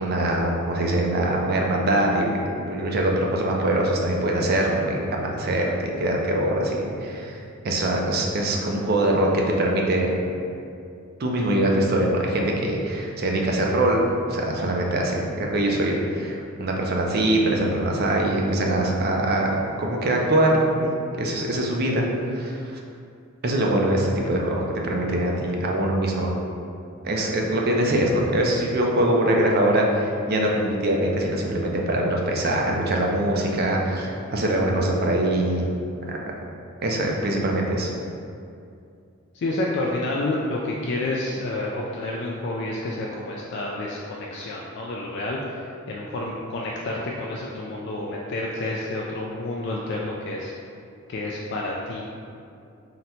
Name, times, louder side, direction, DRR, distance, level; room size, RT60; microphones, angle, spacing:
voice 1, 0.0-7.4 7.6-10.1 11.2-22.8 23.4-26.4 27.0-35.7 36.1-36.2 36.8-37.9, right 1 dB, 50° right, 0 dB, 0.5 m, -23 dB
voice 2, 39.3-50.5 51.1-52.0, left 2 dB, 55° left, -3 dB, 0.4 m, -29 dB
3.9 x 2.2 x 4.2 m, 2.5 s
head